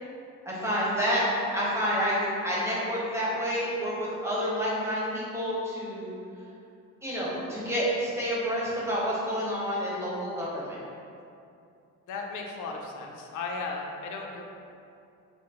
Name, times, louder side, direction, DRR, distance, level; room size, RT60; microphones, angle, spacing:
voice 1, 0.4-1.3 1.5-6.1 7.0-10.8, equal, 10° right, -7 dB, 1.1 m, -29 dB
voice 2, 12.1-14.4, left 3 dB, 80° left, 1 dB, 0.6 m, -36 dB
5.1 x 2.1 x 2.9 m, 2.6 s
cardioid pair, 90°, 30 cm